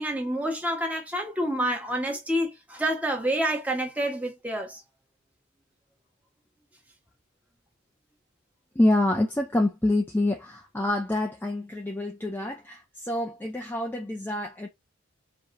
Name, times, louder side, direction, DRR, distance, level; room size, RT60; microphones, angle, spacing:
voice 1, 0.0-4.8, right 1 dB, 5° right, 1.2 m, -28 dB
voice 2, 8.7-14.7, left 1 dB, 10° left, 0.5 m, -26 dB
4.8 x 3.0 x 2.6 m
head